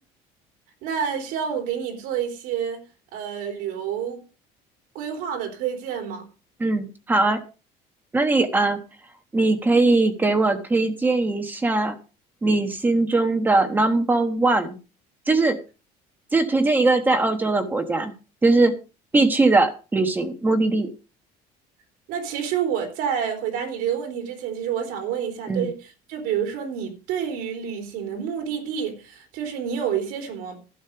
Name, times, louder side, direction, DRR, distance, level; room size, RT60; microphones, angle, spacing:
voice 1, 0.8-2.8 3.1-4.2 4.9-6.3 22.1-30.6, right 8 dB, 60° right, 3.8 m, -28 dB
voice 2, 6.6-7.4 8.1-8.8 9.3-11.9 12.4-14.8 15.3-15.6 16.3-18.1 18.4-18.7 19.1-20.9 25.5-25.7, right 2 dB, 10° right, 1.1 m, -20 dB
12.0 x 6.3 x 7.0 m
cardioid pair, 180°, 16 cm